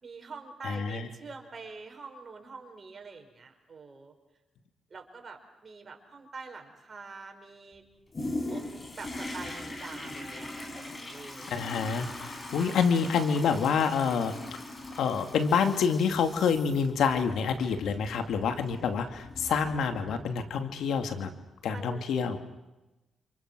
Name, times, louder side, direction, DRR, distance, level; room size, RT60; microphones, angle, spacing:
voice 1, 0.0-4.1 4.9-7.8 8.5-11.5 12.5-13.0 21.7-22.1, right 4 dB, 45° right, 4 dB, 5.6 m, -46 dB
voice 2, 0.6-1.1 11.5-14.4 15.0-21.3 21.6-22.4, left 6 dB, 80° left, 6 dB, 2.5 m, -27 dB
Toilet flush, 8.1-20.6 21.1-21.2, left 2 dB, 35° left, 6.7 m, -41 dB
29.0 x 27.0 x 6.3 m, 1.0 s
cardioid pair, 70°, 0 cm